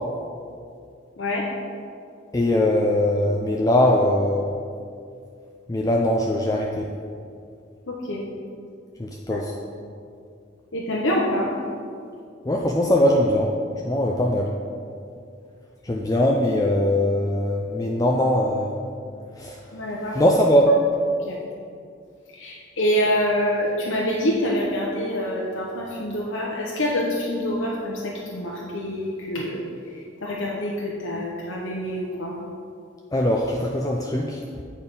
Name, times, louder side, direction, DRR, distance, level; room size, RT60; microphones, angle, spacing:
voice 1, 2.3-4.5 5.7-6.9 9.0-9.5 12.5-13.5 13.8-14.5 15.9-18.8 19.4-19.6 20.1-20.7 33.1-34.4, left 1 dB, 20° left, 0 dB, 0.4 m, -21 dB
voice 2, 7.9-8.2 9.3-9.4 10.7-11.5 19.7-20.1 21.2-21.4 22.3-29.6 30.2-32.3, equal, 85° left, -4 dB, 0.9 m, -26 dB
8.7 x 4.3 x 5.3 m, 2.4 s
head